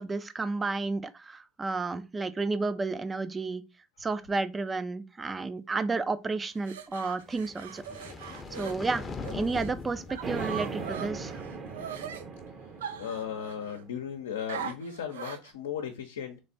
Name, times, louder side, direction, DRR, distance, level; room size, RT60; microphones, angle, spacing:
voice 1, 0.0-3.6 4.0-7.8 8.6-9.0 9.3-11.4, right 3 dB, 20° right, 0.5 m, -31 dB
sound 1, 6.5-9.7 10.1-12.2 12.8-13.8 14.5-15.5, right 8 dB, 90° right, 0.5 m, -41 dB
sound 2, 7.2-11.5, left 3 dB, 25° left, 0.6 m, -41 dB
sound 3, 10.2-14.1, right 4 dB, 35° right, 0.9 m, -38 dB
voice 2, 13.0-16.4, left 8 dB, 85° left, 0.7 m, -36 dB
3.4 x 3.2 x 4.0 m
hypercardioid pair, 90°, 0 cm